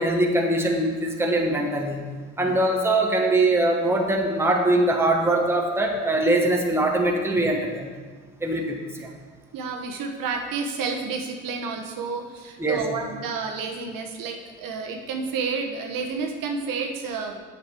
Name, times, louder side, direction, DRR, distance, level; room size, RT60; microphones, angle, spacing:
voice 1, 0.0-2.0 2.4-7.9 8.4-9.1 12.6-12.8, right 1 dB, 5° right, 1 dB, 1.1 m, -22 dB
voice 2, 9.5-17.4, right 5 dB, 60° right, 3 dB, 1.1 m, -30 dB
8.0 x 6.6 x 4.4 m, 1.5 s
supercardioid pair, 90°, 38 cm